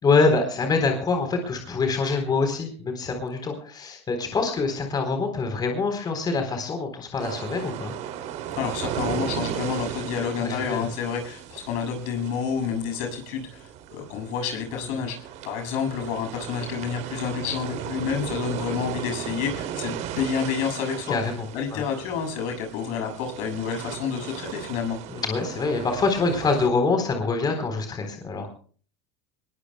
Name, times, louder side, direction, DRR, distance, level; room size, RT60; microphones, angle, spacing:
voice 1, 0.0-7.9 10.4-10.9 21.1-21.8 25.1-28.5, left 4 dB, 30° left, 5 dB, 3.9 m, -25 dB
sound 1, 7.2-26.7, right 10 dB, 55° right, 2.7 m, -36 dB
voice 2, 8.5-21.2 21.5-25.0, left 7 dB, 65° left, 4 dB, 6.9 m, -29 dB
21.0 x 21.0 x 2.3 m, 0.43 s
hypercardioid pair, 90°, 14 cm